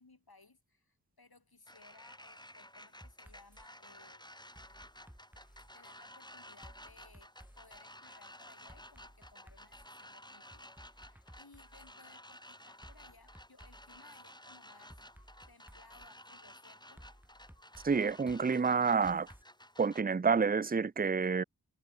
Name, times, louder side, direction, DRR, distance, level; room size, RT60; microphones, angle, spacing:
voice 1, 0.0-4.2 5.7-17.1, left 3 dB, 65° left, 5.3 m, -62 dB
sound 1, 1.7-20.0, left 1 dB, 10° left, 4.0 m, -54 dB
sound 2, 3.0-3.7 4.5-6.0 6.6-7.8 8.7-10.0 10.5-11.9 12.8-14.2 14.9-16.1 17.0-19.4, equal, 5° right, 7.1 m, -57 dB
voice 2, 17.8-19.3 19.8-21.4, right 5 dB, 25° right, 0.5 m, -29 dB
wide cardioid pair, 40°, 39 cm